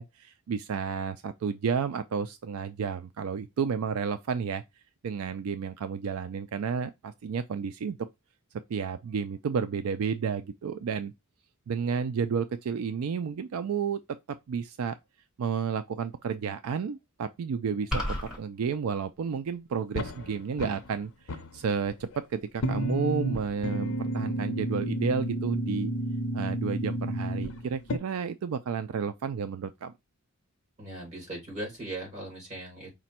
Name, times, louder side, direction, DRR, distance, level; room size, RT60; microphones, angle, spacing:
voice 1, 0.0-4.6 5.0-8.0 8.7-11.1 11.7-14.0 14.5-15.0 15.4-25.9 26.3-29.9, right 6 dB, 80° right, 0.4 m, -31 dB
sound 1, 17.9-18.4, equal, 5° right, 1.5 m, -30 dB
sound 2, 20.0-21.0 21.3-22.2 22.6-28.0, equal, 80° left, 0.7 m, -31 dB
voice 2, 30.8-32.9, right 1 dB, 30° right, 3.0 m, -39 dB
4.9 x 2.2 x 4.2 m
head